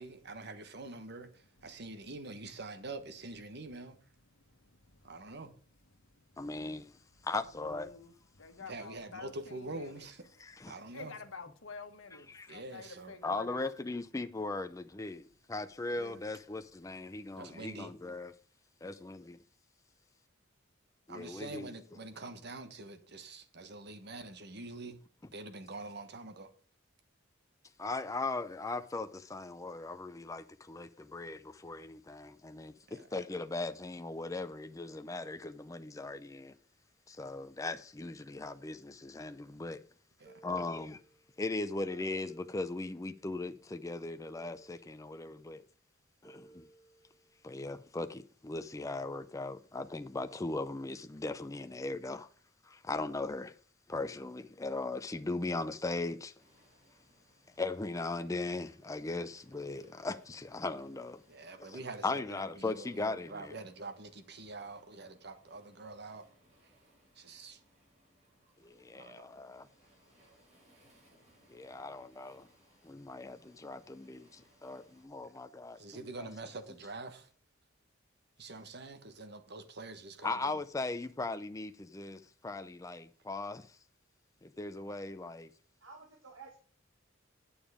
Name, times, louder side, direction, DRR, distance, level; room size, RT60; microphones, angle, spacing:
voice 1, 0.0-4.0 5.0-5.5 8.6-10.3 10.7-11.1 12.5-13.1 15.9-16.2 17.4-17.9 21.1-25.0 25.3-26.5 32.9-33.1 40.2-40.3 61.3-66.3 67.1-67.6 68.9-69.3 75.8-77.3 78.4-80.5, right 2 dB, 55° right, 1.3 m, -45 dB
voice 2, 4.3-5.2 5.9-6.4 7.6-10.1 10.9-13.7, left 4 dB, 85° left, 1.3 m, -50 dB
voice 3, 6.4-7.0 7.2-7.9 10.4-10.7 12.3-12.6 13.2-18.3 18.8-19.4 21.1-21.7 27.8-36.5 37.1-39.8 40.4-41.0 41.4-45.6 46.2-46.7 47.4-52.3 52.6-53.6 53.9-56.3 57.6-61.2 61.7-63.5 68.6-69.7 71.5-72.5 72.8-75.8 76.2-76.3 80.2-83.8 84.4-85.5, left 3 dB, 15° left, 0.5 m, -38 dB
sound 1, 40.3-41.4 42.3-43.4 44.2-45.4 46.2-47.4, right 3 dB, 15° right, 1.3 m, -60 dB
voice 4, 41.7-42.0 85.8-86.6, right 3 dB, 75° right, 1.9 m, -52 dB
Waves surf, 56.4-75.0, right 1 dB, 35° right, 4.3 m, -67 dB
9.2 x 7.1 x 4.9 m
head